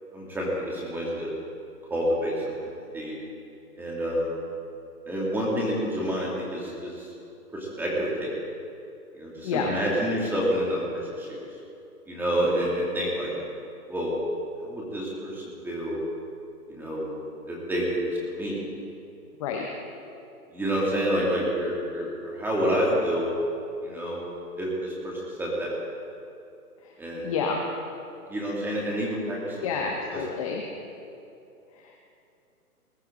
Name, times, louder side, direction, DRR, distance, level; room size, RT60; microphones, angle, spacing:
voice 1, 0.1-1.3 1.9-2.5 2.9-3.2 3.8-4.4 5.1-7.1 7.5-8.3 9.1-10.8 11.2-11.4 12.1-13.3 13.9-14.1 14.6-16.0 16.7-17.1 17.5-18.5 20.5-23.3 23.8-24.2 24.6-25.8 27.0-27.3 28.3-29.8 30.1-30.2, equal, 5° right, -5 dB, 2.4 m, -28 dB
voice 2, 27.2-27.6 29.6-30.6, left 6 dB, 20° left, 1 dB, 0.9 m, -28 dB
20.5 x 13.0 x 3.8 m, 2.7 s
hypercardioid pair, 150°, 46 cm